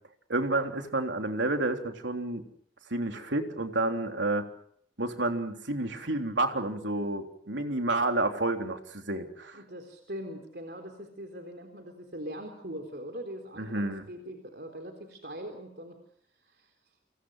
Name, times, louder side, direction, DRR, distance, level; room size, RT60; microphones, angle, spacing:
voice 1, 0.3-2.4 2.9-4.5 5.0-9.6 13.6-14.1, right 2 dB, 90° right, 4 dB, 3.5 m, -30 dB
voice 2, 9.5-16.0 16.4-16.7, equal, 60° right, 4 dB, 3.8 m, -41 dB
29.5 x 27.0 x 6.5 m, 0.65 s
head